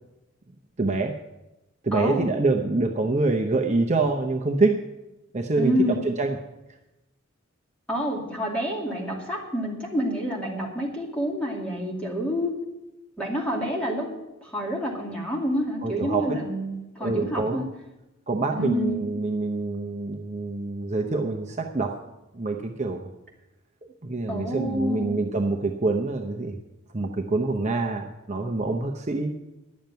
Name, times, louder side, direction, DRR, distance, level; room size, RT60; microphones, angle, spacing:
voice 1, 0.8-1.1 1.8-4.8 5.3-6.4 15.8-16.4 17.0-17.6 18.3-22.0 22.3-23.1 24.0-26.6 26.9-29.3, right 3 dB, 35° right, 3 dB, 0.7 m, -26 dB
voice 2, 1.9-2.3 5.6-6.0 7.9-12.5 13.2-14.1 14.4-17.7 18.5-19.0 24.3-25.2, equal, 5° left, -2 dB, 2.5 m, -28 dB
10.5 x 7.3 x 9.3 m, 0.98 s
head